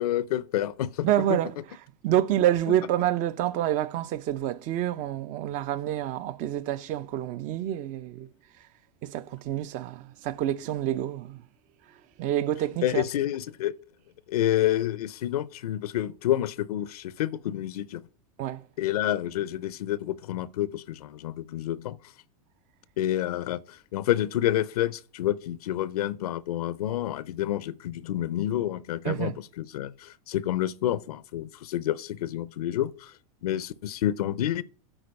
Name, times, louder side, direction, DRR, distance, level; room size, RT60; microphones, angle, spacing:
voice 1, 0.0-1.1 12.8-13.7 14.3-18.0 18.8-22.0 23.0-33.1 33.4-34.6, left 12 dB, 85° left, 0.5 m, -29 dB
voice 2, 1.0-1.5 2.0-8.3 9.0-11.4 12.2-13.0 18.4-18.6 29.1-29.3, right 12 dB, 45° right, 0.6 m, -27 dB
8.8 x 4.4 x 5.2 m
hypercardioid pair, 110°, 19 cm